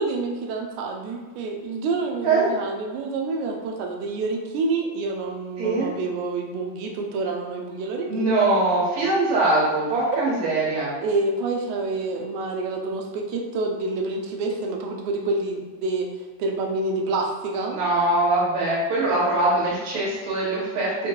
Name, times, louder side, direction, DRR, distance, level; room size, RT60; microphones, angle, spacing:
voice 1, 0.0-8.3 10.1-10.2 11.0-16.1 16.4-17.8, right 3 dB, 85° right, 1 dB, 2.0 m, -27 dB
voice 2, 5.6-5.9 8.1-10.9 17.7-21.1, right 2 dB, 70° right, -6 dB, 2.3 m, -22 dB
5.4 x 2.2 x 2.9 m, 1.3 s
omnidirectional pair, 3.3 m